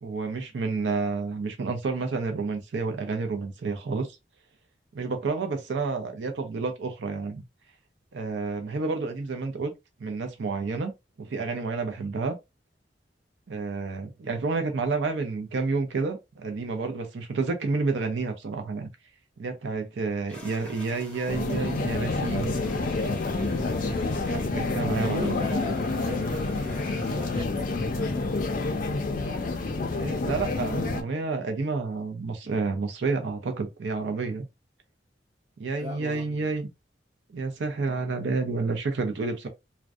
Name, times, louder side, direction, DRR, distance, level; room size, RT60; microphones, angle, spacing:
voice 1, 0.0-4.1 4.9-7.4 8.1-9.7 10.0-10.9 11.2-12.4 13.5-18.9 19.4-22.6 23.9-25.4 29.9-34.5 35.6-36.7 37.3-39.5, right 4 dB, 85° right, 0.5 m, -30 dB
sound 1, 20.3-27.4, left 1 dB, 5° left, 0.7 m, -48 dB
sound 2, 21.3-31.0, left 3 dB, 50° left, 0.4 m, -28 dB
voice 2, 24.9-28.6 35.7-36.5, left 2 dB, 25° right, 0.8 m, -39 dB
2.5 x 2.1 x 2.3 m
head